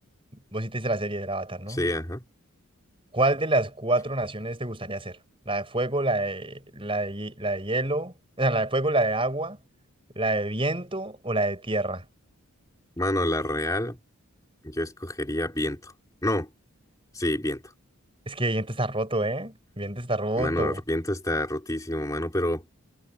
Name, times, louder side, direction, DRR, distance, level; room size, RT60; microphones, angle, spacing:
voice 1, 0.5-1.9 3.1-5.2 5.5-9.6 10.2-12.0 18.3-20.8, right 2 dB, 25° right, 6.8 m, -27 dB
voice 2, 1.7-2.2 13.0-14.0 14.6-15.9 16.2-16.5 17.1-17.7 20.4-22.6, left 1 dB, 15° left, 3.3 m, -28 dB
head